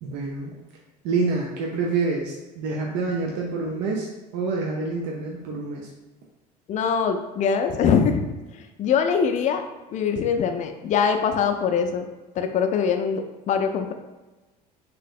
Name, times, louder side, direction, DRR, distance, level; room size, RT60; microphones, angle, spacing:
voice 1, 0.0-0.5 1.0-5.9, right 4 dB, 60° right, -2 dB, 0.6 m, -27 dB
voice 2, 6.7-8.2 8.5-9.6 9.9-12.1 12.4-13.9, left 6 dB, 35° left, 6 dB, 0.4 m, -23 dB
3.2 x 2.9 x 2.4 m, 1.1 s
hypercardioid pair, 70°, 21 cm